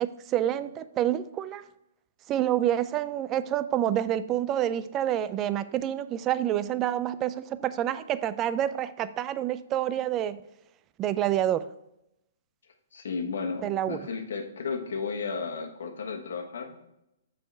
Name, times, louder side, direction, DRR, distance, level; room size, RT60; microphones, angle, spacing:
voice 1, 0.0-1.6 2.3-10.4 11.0-11.7 13.6-14.1, right 11 dB, 25° right, 14 dB, 0.3 m, -28 dB
voice 2, 12.9-16.9, left 5 dB, 75° left, 4 dB, 1.3 m, -34 dB
6.5 x 4.8 x 4.4 m, 0.85 s
hypercardioid pair, 150°, 0 cm